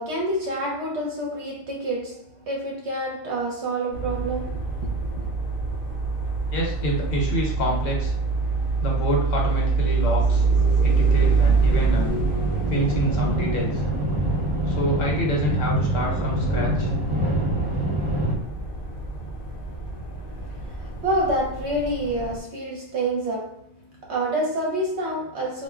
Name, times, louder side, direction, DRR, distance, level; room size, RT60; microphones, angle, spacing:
voice 1, 0.0-5.3 20.3-25.6, right 1 dB, 60° right, 0.9 m, -28 dB
sound 1, 3.9-22.4, right 4 dB, 50° left, 0.8 m, -26 dB
voice 2, 6.5-8.1 8.8-10.4 10.8-12.1 12.7-13.8 14.7-16.9, equal, 65° left, 1.1 m, -27 dB
sound 2, 11.8-18.3, right 1 dB, 25° right, 0.6 m, -26 dB
2.4 x 2.1 x 3.5 m
omnidirectional pair, 1.5 m